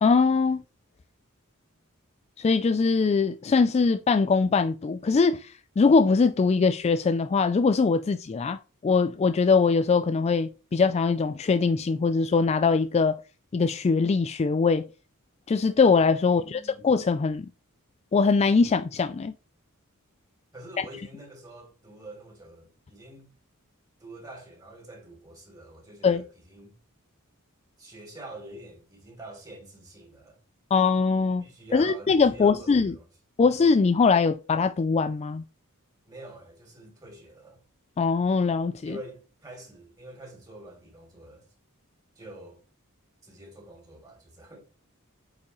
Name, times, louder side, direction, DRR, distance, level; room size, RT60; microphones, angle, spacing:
voice 1, 0.0-0.6 2.4-13.2 13.5-14.9 15.5-17.5 18.1-19.3 20.8-20.9 26.0-26.2 30.7-31.4 31.7-32.9 33.4-35.4 38.0-39.0, left 4 dB, 30° left, 0.3 m, -22 dB
voice 2, 16.2-16.8 20.5-23.3 24.0-26.8 27.8-30.4 31.4-33.1 36.1-37.6 38.8-41.4 42.1-42.6 43.2-44.6, right 1 dB, 15° right, 3.4 m, -46 dB
8.3 x 4.9 x 3.1 m
head